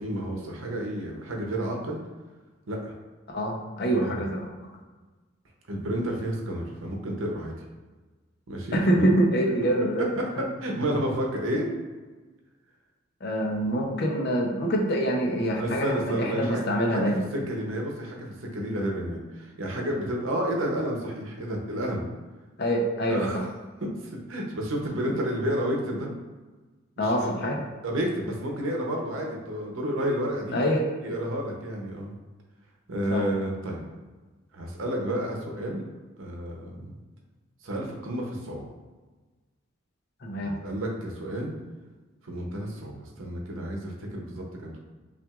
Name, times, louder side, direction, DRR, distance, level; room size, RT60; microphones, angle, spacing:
voice 1, 0.0-2.0 2.7-2.9 3.8-4.3 5.7-7.5 8.5-9.1 10.2-11.7 15.6-16.6 16.9-22.0 23.1-23.4 23.8-26.1 27.0-27.5 27.8-30.6 31.0-32.2 32.9-33.8 34.5-35.9 36.2-37.0 37.6-38.7 40.4-41.5 42.2-44.8, equal, 85° right, 0 dB, 0.8 m, -31 dB
voice 2, 3.3-4.5 8.7-10.1 10.4-10.5 13.2-17.2 22.6-23.2 27.0-27.6 30.5-30.9 33.1-33.2 40.2-40.6, right 1 dB, 55° left, 0 dB, 0.6 m, -25 dB
5.7 x 2.5 x 2.4 m, 1.3 s
head